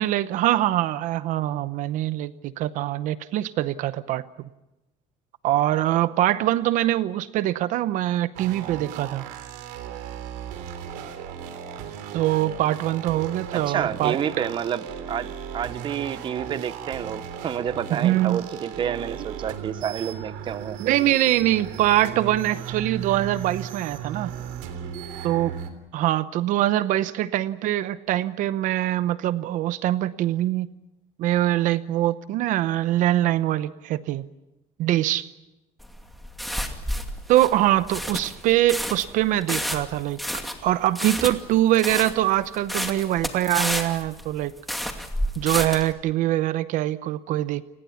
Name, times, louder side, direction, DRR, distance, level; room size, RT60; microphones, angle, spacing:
voice 1, 0.0-4.3 5.4-9.3 12.1-14.5 17.9-18.4 20.8-24.3 25.2-25.6 25.9-30.7 31.2-34.3 34.8-35.3 37.3-40.2 40.6-44.5 45.4-47.6, right 14 dB, 60° right, 14 dB, 0.8 m, -23 dB
sound 1, 8.4-25.7, right 8 dB, 85° right, 3.5 m, -36 dB
voice 2, 13.5-20.8, right 9 dB, 35° right, 15 dB, 0.9 m, -29 dB
sound 2, 35.8-45.9, equal, ahead, 2.5 m, -30 dB
30.0 x 20.0 x 7.2 m, 0.97 s
cardioid pair, 140°, 15 cm